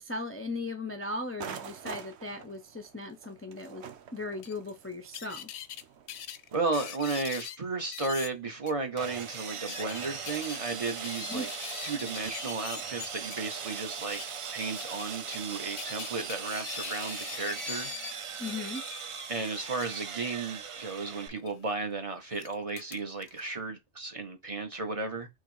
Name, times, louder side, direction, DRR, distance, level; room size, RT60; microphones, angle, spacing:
voice 1, 0.0-3.8 4.1-5.5 11.3-11.5 18.4-18.8, left 2 dB, 20° left, 0.4 m, -37 dB
sound 1, 1.4-6.7, right 7 dB, 85° right, 1.0 m, -46 dB
sound 2, 4.4-4.5 5.1-5.8 6.1-7.6 7.9-8.3 8.7-8.8 9.4-13.4 14.0-14.3 14.6-15.4 15.8-18.1 18.5-20.0 21.3-21.5 22.3-23.4, left 9 dB, 80° left, 0.8 m, -42 dB
voice 2, 6.5-11.5 11.8-14.2 14.5-17.9 19.3-25.3, right 3 dB, 35° right, 0.7 m, -34 dB
Sawing, 9.0-21.3, right 6 dB, 60° right, 0.3 m, -39 dB
3.8 x 3.0 x 4.7 m
omnidirectional pair, 1.1 m